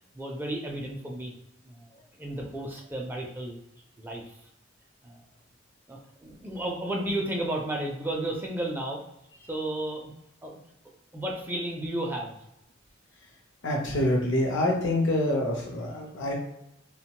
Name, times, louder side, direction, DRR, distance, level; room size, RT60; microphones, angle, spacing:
voice 1, 0.1-1.3 1.6-3.6 4.0-4.4 5.0-5.2 5.9-9.0 9.5-10.1 10.4-10.5 11.1-12.4, right 1 dB, 10° right, -1 dB, 0.4 m, -33 dB
voice 2, 13.6-16.3, left 1 dB, 65° left, 0 dB, 0.7 m, -26 dB
2.9 x 2.2 x 2.9 m, 0.81 s
head